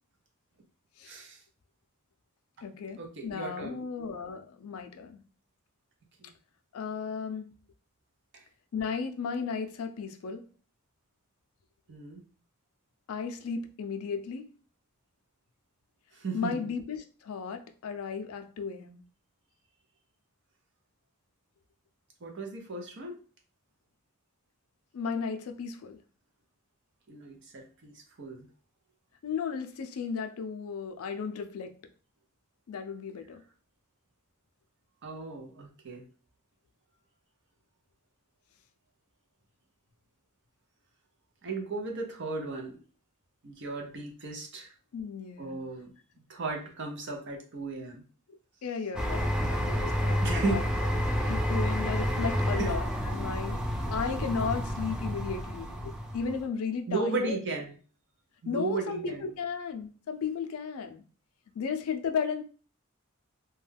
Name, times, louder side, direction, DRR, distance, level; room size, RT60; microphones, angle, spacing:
voice 1, 1.0-1.4 3.0-3.8 6.2-6.3 8.3-8.4 11.9-12.2 16.1-16.7 22.2-23.2 27.1-28.5 35.0-36.0 41.4-42.8 43.4-44.7 45.4-45.9 46.3-48.0 50.2-50.7 52.6-52.7 56.9-57.7 58.4-59.2, right 3 dB, 55° right, 0.7 m, -35 dB
voice 2, 2.6-5.2 6.7-7.5 8.7-10.4 13.1-14.5 16.3-19.0 24.9-26.0 29.2-31.8 32.7-33.4 44.9-45.6 48.3-50.6 51.0-57.4 58.5-61.0 61.5-62.4, left 5 dB, 80° left, 0.4 m, -35 dB
sound 1, 48.9-56.4, equal, 5° right, 0.3 m, -30 dB
2.2 x 2.2 x 3.3 m
head